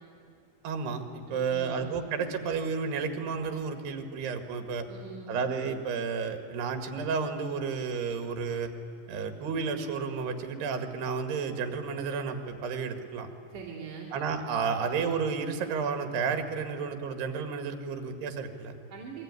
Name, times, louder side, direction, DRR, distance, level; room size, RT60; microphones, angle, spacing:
voice 1, 0.6-4.9 5.3-8.7 9.1-13.3 14.1-18.7, right 5 dB, 75° right, 7 dB, 3.8 m, -32 dB
voice 2, 1.3-2.0 4.9-5.3 13.5-14.1 18.9-19.2, right 5 dB, 50° right, -4 dB, 3.9 m, -42 dB
27.5 x 22.0 x 9.7 m, 2.3 s
omnidirectional pair, 4.9 m